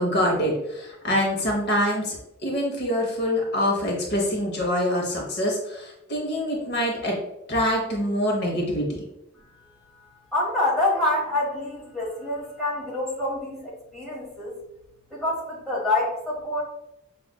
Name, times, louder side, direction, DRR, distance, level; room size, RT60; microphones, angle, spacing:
voice 1, 0.0-2.2 2.4-7.2 7.5-8.8, equal, 55° left, -1 dB, 0.9 m, -25 dB
voice 2, 10.3-14.5 15.1-16.6, left 2 dB, ahead, -7 dB, 1.3 m, -26 dB
6.0 x 2.4 x 2.2 m, 0.85 s
head